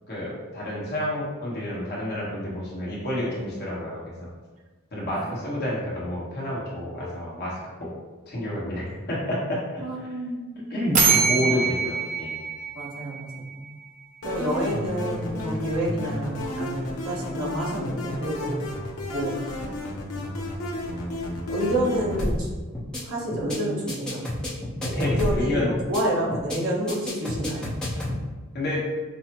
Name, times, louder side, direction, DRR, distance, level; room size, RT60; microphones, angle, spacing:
voice 1, 0.1-4.3 4.9-7.9 8.3-9.8 10.7-12.4 24.9-25.7 28.0-28.1 28.5-28.8, left 1 dB, 45° left, -6 dB, 1.2 m, -29 dB
voice 2, 9.8-10.8 11.0-11.5 12.7-13.6 14.2-18.6 19.1-19.4 21.5-22.5 23.0-24.2 24.8-27.7, right 1 dB, 70° right, -5 dB, 1.0 m, -29 dB
sound 1, 10.9-13.7, right 5 dB, 35° right, 0.5 m, -24 dB
sound 2, 14.2-22.2, left 1 dB, 85° left, 0.7 m, -32 dB
sound 3, 22.2-22.5 22.7-23.0 23.3-23.6 23.9-25.5 25.7-26.0 26.3-26.6 26.9-28.2, left 1 dB, 5° left, 0.7 m, -29 dB
5.5 x 2.0 x 2.9 m, 1.3 s
head